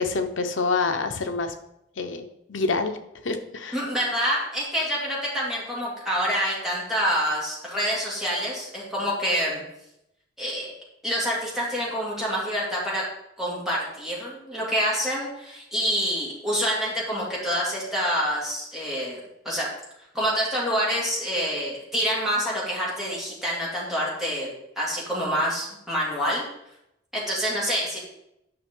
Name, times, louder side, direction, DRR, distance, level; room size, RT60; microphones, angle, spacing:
voice 1, 0.0-1.5 2.0-3.0 3.2-3.8, left 4 dB, 75° left, 6 dB, 0.8 m, -27 dB
voice 2, 3.7-9.6 10.4-10.7 11.0-13.0 13.4-19.2 19.4-19.7 20.1-26.4 27.1-28.0, equal, ahead, -6 dB, 2.4 m, -27 dB
9.7 x 5.8 x 3.7 m, 0.82 s
head